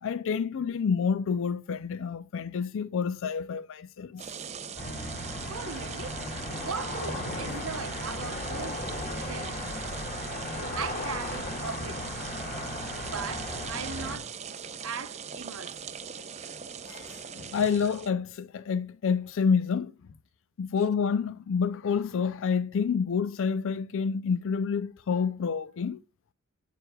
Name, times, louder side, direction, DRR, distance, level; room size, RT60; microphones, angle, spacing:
voice 1, 0.0-4.3 10.5-10.8 16.9-19.9 20.6-26.0, left 6 dB, 60° left, 0.4 m, -28 dB
sound 1, 4.2-18.1, right 7 dB, 30° right, 0.6 m, -41 dB
sound 2, 4.8-14.2, left 1 dB, 35° left, 2.3 m, -36 dB
voice 2, 5.5-6.2 6.6-8.8 9.2-10.0 10.8-12.0 12.9-14.4 14.8-15.8 16.3-16.6, right 5 dB, 65° right, 0.9 m, -39 dB
9.1 x 7.7 x 2.2 m
head